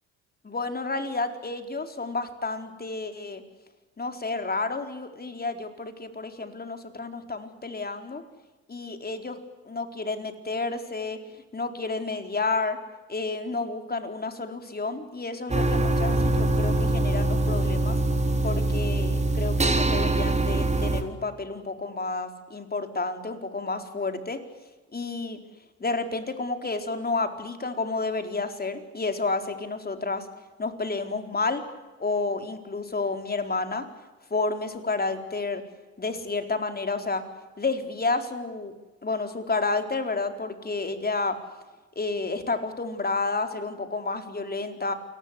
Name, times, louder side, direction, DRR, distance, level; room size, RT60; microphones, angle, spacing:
voice 1, 0.4-3.4 4.0-8.2 8.7-9.4 9.7-11.2 11.5-12.8 13.1-18.0 18.4-24.4 24.9-25.4 25.8-30.3 30.6-31.6 32.0-33.9 34.3-35.6 36.0-37.3 37.6-38.7 39.0-41.4 42.0-44.9, left 3 dB, 25° left, 6 dB, 4.3 m, -30 dB
sound 1, 15.5-21.0, right 2 dB, 15° right, 3.9 m, -23 dB
28.5 x 19.5 x 8.5 m, 1.2 s
hypercardioid pair, 65°, 38 cm